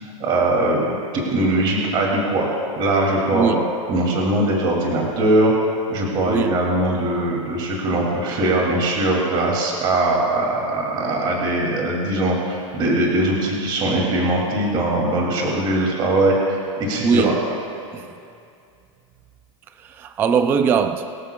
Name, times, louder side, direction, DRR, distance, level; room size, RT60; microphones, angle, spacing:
voice 1, 0.2-2.5 2.8-3.5 3.9-5.5 5.9-17.3, right 1 dB, 30° right, 2.6 m, -21 dB
voice 2, 3.3-3.7 6.3-6.6 17.0-17.4 17.9-18.1 19.8-21.2, right 6 dB, 10° right, 0.3 m, -21 dB
23.0 x 13.5 x 2.3 m
supercardioid pair, 155°, 17 cm